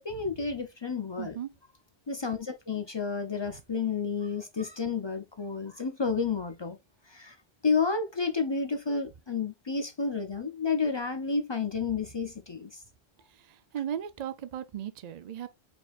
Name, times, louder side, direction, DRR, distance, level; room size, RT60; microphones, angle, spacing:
voice 1, 0.0-1.4 2.1-6.8 7.1-7.4 7.6-12.8, left 5 dB, 40° left, 0.4 m, -31 dB
voice 2, 1.2-1.5 13.3-15.5, right 10 dB, 50° right, 0.5 m, -37 dB
4.8 x 3.7 x 2.3 m
omnidirectional pair, 1.1 m